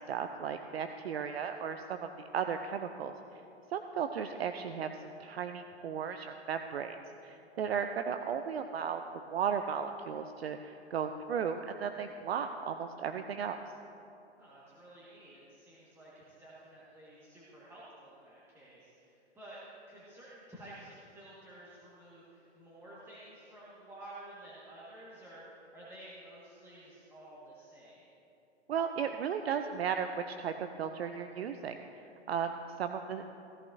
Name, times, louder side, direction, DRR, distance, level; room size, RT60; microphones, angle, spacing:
voice 1, 0.1-3.1 3.7-4.9 5.2-7.0 7.2-9.0 9.3-13.6 28.7-30.5 30.8-31.7 32.3-33.4, right 7 dB, 60° right, 7 dB, 0.7 m, -35 dB
voice 2, 14.4-19.6 19.9-28.0, right 1 dB, 5° right, -9 dB, 1.7 m, -52 dB
16.5 x 14.0 x 2.7 m, 2.8 s
hypercardioid pair, 125°, 35 cm